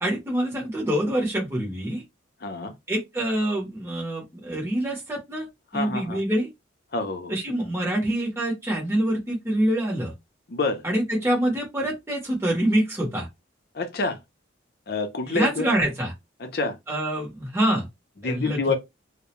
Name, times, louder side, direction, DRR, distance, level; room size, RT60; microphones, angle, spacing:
voice 1, 0.0-2.0 2.9-5.5 5.7-6.5 7.3-10.1 10.8-13.3 15.2-16.1 16.9-17.9 18.2-18.8, right 1 dB, 15° right, 0.8 m, -25 dB
voice 2, 2.4-2.7 5.7-6.2 6.9-7.3 10.5-10.8 13.7-14.2 14.9-15.7 16.4-16.8 18.2-18.8, left 3 dB, 50° left, 0.5 m, -27 dB
2.3 x 2.0 x 2.9 m
head